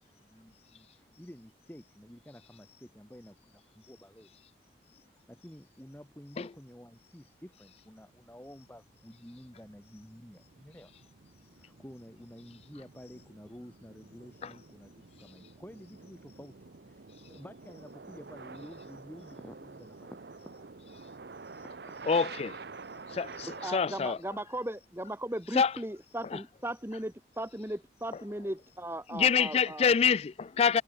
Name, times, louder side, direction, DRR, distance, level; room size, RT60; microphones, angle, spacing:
voice 1, 0.0-4.4 5.1-10.9 11.5-20.5 21.3-21.4, equal, 10° left, 2.0 m, -51 dB
sound 1, 7.7-23.7, right 4 dB, 65° right, 0.8 m, -49 dB
voice 2, 22.1-22.5 23.1-24.2 25.6-25.7 29.1-30.8, left 6 dB, 35° left, 0.3 m, -26 dB
voice 3, 23.4-30.0, right 1 dB, 15° right, 2.0 m, -37 dB
head